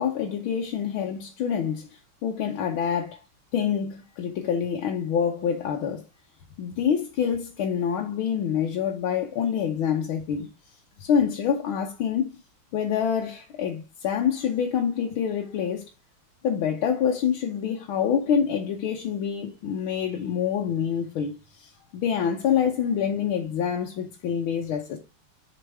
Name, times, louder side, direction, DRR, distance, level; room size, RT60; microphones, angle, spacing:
voice 1, 0.0-3.2 3.5-6.0 6.6-10.5 11.0-12.3 12.7-15.8 16.4-25.0, left 8 dB, 80° left, 1.7 m, -26 dB
7.6 x 5.2 x 3.4 m
omnidirectional pair, 2.3 m